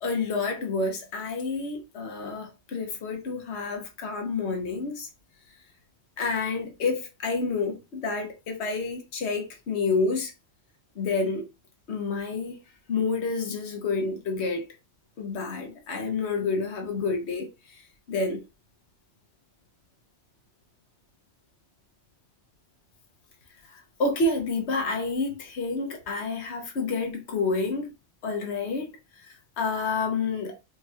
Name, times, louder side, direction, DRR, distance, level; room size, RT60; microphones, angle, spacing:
voice 1, 0.0-5.1 6.2-10.3 10.9-11.5 11.9-12.6 12.9-14.7 15.2-17.8 18.1-18.4 23.6-27.9 28.2-30.6, left 3 dB, 65° left, 1.3 m, -29 dB
5.1 x 3.0 x 2.3 m
omnidirectional pair, 1.2 m